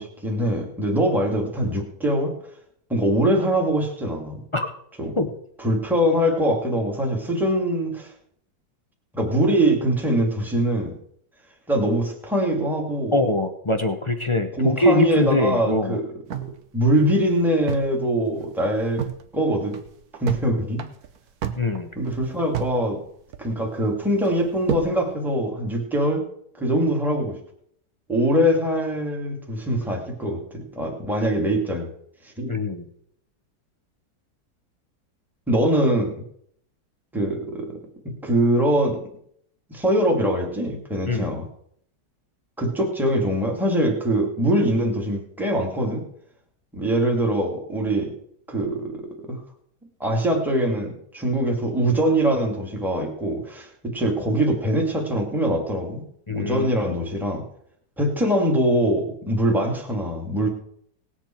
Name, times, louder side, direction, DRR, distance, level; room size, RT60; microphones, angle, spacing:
voice 1, 0.0-2.3 2.9-4.4 5.0-5.1 5.6-8.1 9.1-10.9 11.7-13.2 14.5-16.0 16.3-16.4 16.7-19.0 19.3-19.8 20.2-20.8 22.0-23.0 23.4-26.2 26.6-27.4 28.1-31.9 32.2-32.5 35.5-36.2 37.1-37.8 38.0-39.1 39.7-41.5 42.6-46.0 46.7-48.1 48.5-49.4 50.0-56.0 56.3-57.4 58.0-60.5, right 1 dB, ahead, 0 dB, 2.0 m, -23 dB
voice 2, 13.1-16.0 21.6-21.9 32.5-32.9 41.1-41.3 56.3-57.0, left 2 dB, 40° left, 6 dB, 0.4 m, -23 dB
sound 1, 16.3-18.0 18.3-18.4 18.7-19.2 19.6-20.5 20.8-22.8 23.1-23.8 24.2-25.0, right 8 dB, 60° right, 1.3 m, -31 dB
19.0 x 8.2 x 4.4 m, 0.68 s
omnidirectional pair, 1.9 m